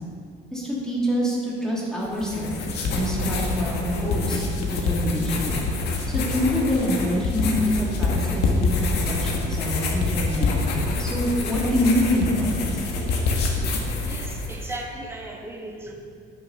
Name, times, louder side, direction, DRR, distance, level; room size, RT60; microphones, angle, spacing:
voice 1, 0.5-2.5 2.9-5.5 6.1-8.8 9.1-12.8, equal, 5° left, -5 dB, 3.1 m, -26 dB
sound 1, 2.0-14.8, left 3 dB, 75° left, 1.7 m, -26 dB
voice 2, 14.0-15.9, right 1 dB, 15° right, 0 dB, 1.6 m, -36 dB
11.0 x 7.1 x 5.7 m, 2.2 s
cardioid pair, 110°, 17 cm